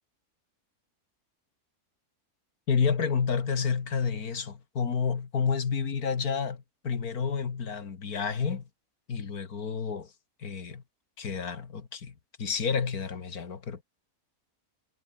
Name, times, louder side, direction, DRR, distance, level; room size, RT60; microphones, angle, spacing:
voice 1, 2.7-8.7 9.1-10.1 10.4-10.8 11.2-13.8, left 6 dB, 70° left, 2.4 m, -30 dB
omnidirectional pair, 1.6 m